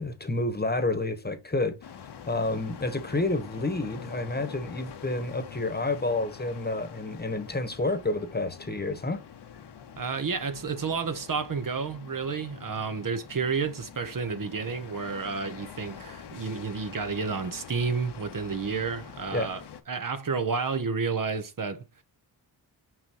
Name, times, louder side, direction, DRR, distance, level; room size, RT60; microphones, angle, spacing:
voice 1, 0.0-1.8 2.3-9.2 19.3-19.5, left 2 dB, 20° left, 1.3 m, -29 dB
sound 1, 1.8-19.8, left 7 dB, 60° left, 1.0 m, -45 dB
voice 2, 10.0-19.6 19.9-22.0, right 5 dB, 45° right, 1.0 m, -31 dB
5.8 x 5.4 x 3.0 m
cardioid pair, 65°, 44 cm